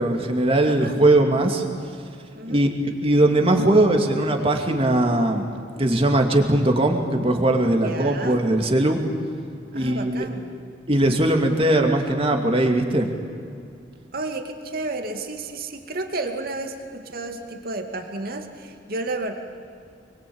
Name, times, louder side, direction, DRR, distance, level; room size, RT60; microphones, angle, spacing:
voice 1, 0.0-1.7 2.5-5.5 5.8-9.0 9.7-10.3 10.9-13.1, right 1 dB, 30° right, 3 dB, 2.6 m, -20 dB
voice 2, 0.6-1.0 2.3-2.6 7.7-8.4 9.7-10.5 14.1-19.3, right 2 dB, 55° right, 4 dB, 2.4 m, -32 dB
25.5 x 23.0 x 8.9 m, 2.4 s
head